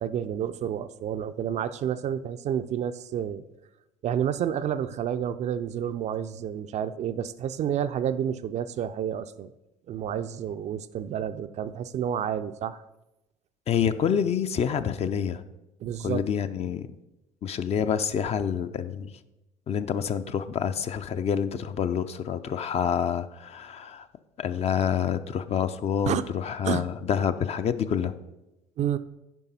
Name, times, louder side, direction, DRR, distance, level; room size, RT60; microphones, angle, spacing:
voice 1, 0.0-3.4 4.0-9.5 9.9-12.8 15.8-16.2 26.1-26.3 26.6-26.8 28.8-29.0, right 9 dB, 40° right, 11 dB, 0.4 m, -30 dB
voice 2, 13.7-15.4 16.0-16.9 17.4-19.1 19.7-24.1 24.4-28.1, left 8 dB, 35° left, 11 dB, 0.5 m, -27 dB
9.0 x 5.3 x 4.1 m, 0.95 s
hypercardioid pair, 60°, 18 cm